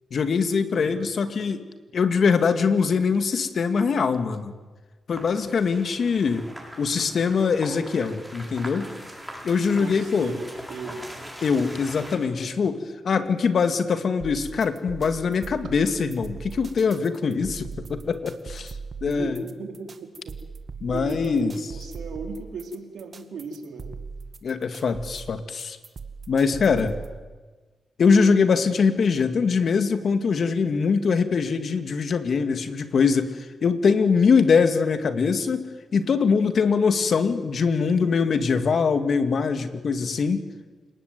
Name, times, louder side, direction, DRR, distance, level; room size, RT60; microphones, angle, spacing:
voice 1, 0.1-1.6 1.9-4.5 5.1-6.5 6.8-8.9 9.4-10.3 11.4-18.7 19.0-19.4 20.8-21.6 24.4-25.8 26.3-26.9 28.0-35.7 35.9-40.4, left 5 dB, 65° left, 9 dB, 2.3 m, -22 dB
voice 2, 0.7-1.1 8.9-9.0 9.8-11.0 19.1-20.3 20.9-23.9, right 4 dB, 85° right, 4 dB, 4.0 m, -36 dB
sound 1, 5.1-12.2, equal, ahead, 7.5 m, -41 dB
sound 2, 14.2-27.2, right 5 dB, 50° right, 2.2 m, -39 dB
28.5 x 19.0 x 9.4 m, 1.3 s
cardioid pair, 75°, 0 cm